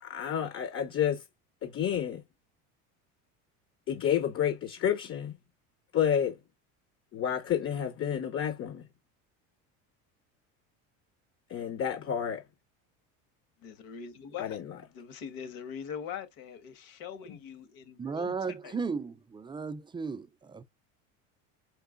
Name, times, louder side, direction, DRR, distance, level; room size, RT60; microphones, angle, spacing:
voice 1, 0.0-1.2 1.6-2.2 3.9-5.4 5.9-6.4 7.1-8.8 11.5-12.4 14.4-14.6, left 9 dB, 35° left, 0.8 m, -30 dB
voice 2, 13.6-14.6 14.9-18.3 18.6-18.8, left 7 dB, 60° left, 1.5 m, -42 dB
voice 3, 18.0-20.6, right 5 dB, 15° right, 0.4 m, -35 dB
4.7 x 4.5 x 2.4 m
supercardioid pair, 105°, 39 cm